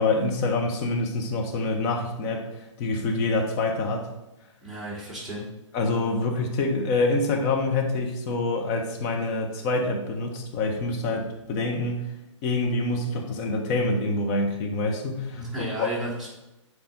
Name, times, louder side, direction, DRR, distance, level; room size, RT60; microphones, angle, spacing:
voice 1, 0.0-2.5 2.8-4.1 5.7-12.1 12.4-15.9, left 2 dB, 35° left, 2 dB, 1.4 m, -26 dB
voice 2, 4.6-5.4 15.3-16.3, right 1 dB, ahead, -9 dB, 2.9 m, -33 dB
7.9 x 5.3 x 4.2 m, 0.97 s
hypercardioid pair, 130°, 16 cm